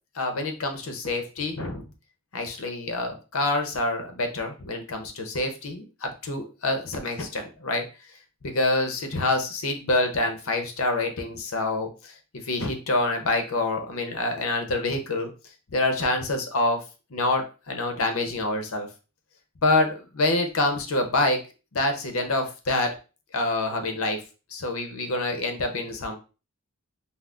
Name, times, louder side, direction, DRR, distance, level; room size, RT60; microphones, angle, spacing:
voice 1, 0.1-1.9 2.3-7.8 8.4-15.3 15.7-16.8 17.1-18.9 19.6-21.4 21.7-23.0 23.3-24.2 24.5-26.2, left 2 dB, 75° left, 5 dB, 0.7 m, -26 dB
5.7 x 2.0 x 2.4 m, 0.33 s
head